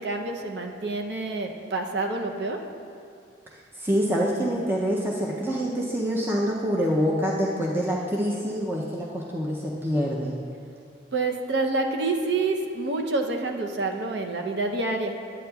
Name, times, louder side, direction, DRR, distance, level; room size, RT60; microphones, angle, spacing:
voice 1, 0.0-2.6 11.1-15.1, right 3 dB, 65° right, 3 dB, 0.6 m, -27 dB
voice 2, 3.7-10.4, equal, 10° right, -4 dB, 0.5 m, -26 dB
11.5 x 8.6 x 2.3 m, 2.4 s
head